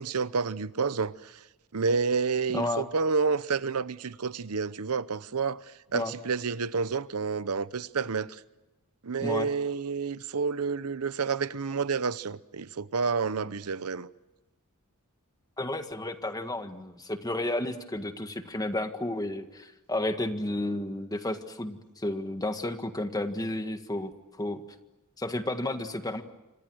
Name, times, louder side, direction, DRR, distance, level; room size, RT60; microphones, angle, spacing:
voice 1, 0.0-1.4 1.7-5.6 5.9-8.4 9.0-14.1, right 5 dB, 85° right, 0.8 m, -29 dB
voice 2, 2.5-2.9 5.9-6.1 9.2-9.5 15.6-24.1 24.4-24.6 25.2-26.2, left 1 dB, 15° left, 1.7 m, -32 dB
28.0 x 25.5 x 6.4 m
head